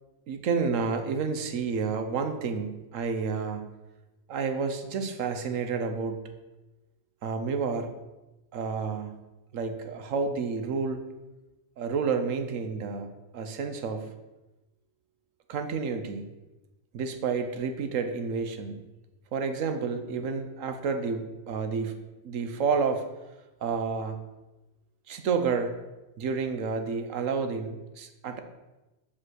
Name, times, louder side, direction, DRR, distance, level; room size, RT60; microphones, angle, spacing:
voice 1, 0.3-3.7 4.3-6.2 7.2-7.9 8.5-9.2 9.5-11.0 11.8-14.1 15.5-16.2 16.9-18.8 19.3-21.9 22.2-23.0 23.6-24.2 25.1-25.7 26.2-28.4, right 5 dB, 90° right, 7 dB, 1.2 m, -30 dB
5.9 x 5.3 x 6.2 m, 1.1 s
omnidirectional pair, 1.3 m